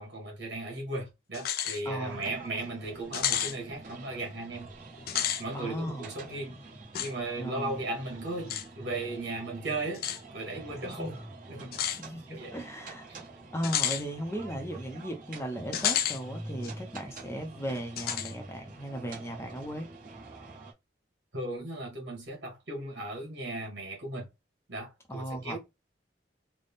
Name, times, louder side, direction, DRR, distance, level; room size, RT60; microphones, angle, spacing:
voice 1, 0.0-4.7 5.4-6.6 7.0-10.1 10.3-11.2 11.5-11.8 12.3-12.6 13.1-13.3 21.3-24.3 24.7-25.6, right 2 dB, 75° right, 1.9 m, -36 dB
sound 1, 1.3-1.8 2.2-2.3 3.1-3.6 5.0-5.4 6.9-7.1 8.5-8.7 9.9-10.2 11.7-12.0 13.6-14.0 15.7-16.2 16.6-16.7 18.0-18.3, left 10 dB, 55° left, 0.4 m, -30 dB
voice 2, 1.8-2.2 5.5-6.1 7.4-7.8 10.8-11.2 12.0-13.1 13.5-19.9 25.1-25.6, equal, 15° left, 0.7 m, -37 dB
sound 2, 2.0-20.7, right 2 dB, 45° right, 1.3 m, -46 dB
4.0 x 2.2 x 3.5 m
head